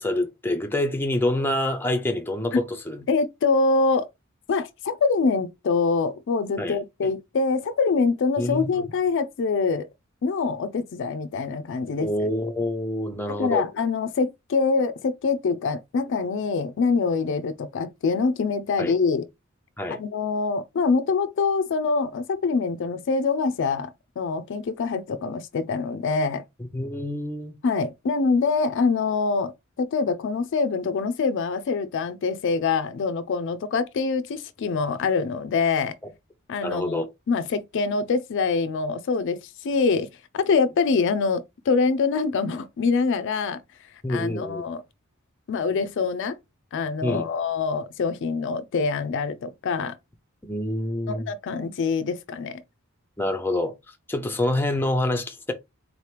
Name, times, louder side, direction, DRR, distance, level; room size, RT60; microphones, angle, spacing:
voice 1, 0.0-3.0 6.6-7.1 8.4-8.8 12.0-13.6 18.8-18.9 19.8-20.0 26.7-27.6 36.6-37.1 44.0-44.6 47.0-47.2 50.4-51.3 53.2-53.7 54.1-55.5, left 1 dB, 10° left, 0.5 m, -26 dB
voice 2, 3.1-4.1 4.5-9.9 10.2-12.1 13.3-19.3 19.9-26.4 27.6-29.5 29.8-36.0 36.5-37.0 37.3-40.1 40.3-43.6 44.1-44.8 45.5-46.4 46.7-50.0 51.1-52.6, left 4 dB, 60° left, 0.4 m, -25 dB
4.1 x 2.9 x 3.2 m
head